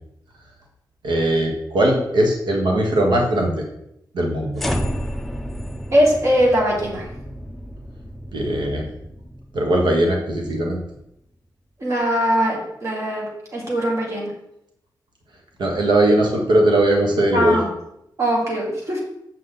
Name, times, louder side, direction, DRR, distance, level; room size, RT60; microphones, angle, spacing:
voice 1, 1.0-3.6 4.1-4.6 8.3-8.9 9.5-10.8 15.6-17.6, right 1 dB, 90° right, 1 dB, 1.4 m, -19 dB
sound 1, 4.6-10.9, equal, ahead, 0.5 m, -31 dB
voice 2, 5.9-7.1 11.8-14.3 17.3-17.7 18.2-19.0, equal, 40° right, -2 dB, 2.0 m, -21 dB
7.6 x 6.7 x 3.9 m, 0.81 s
wide cardioid pair, 180°, 8 cm